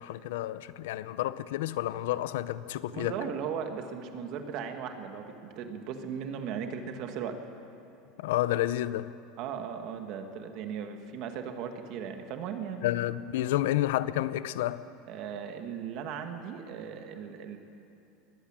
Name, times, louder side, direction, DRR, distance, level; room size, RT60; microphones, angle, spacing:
voice 1, 0.0-3.2 8.2-9.1 12.8-14.8, left 14 dB, 85° left, 16 dB, 0.7 m, -30 dB
voice 2, 2.9-7.4 9.4-12.9 15.1-17.6, right 7 dB, 45° right, 6 dB, 1.9 m, -37 dB
21.0 x 15.0 x 8.9 m, 2.7 s
supercardioid pair, 165°, 0 cm